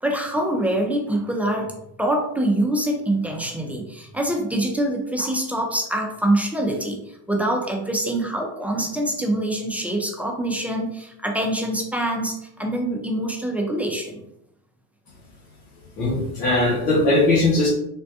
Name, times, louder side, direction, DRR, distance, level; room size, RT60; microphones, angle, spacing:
voice 1, 0.0-1.7 2.0-14.2, right 1 dB, 5° right, 0 dB, 0.3 m, -25 dB
voice 2, 16.0-17.7, left 2 dB, 85° left, -5 dB, 1.0 m, -19 dB
3.4 x 2.1 x 2.7 m, 0.78 s
hypercardioid pair, 90°, 45 cm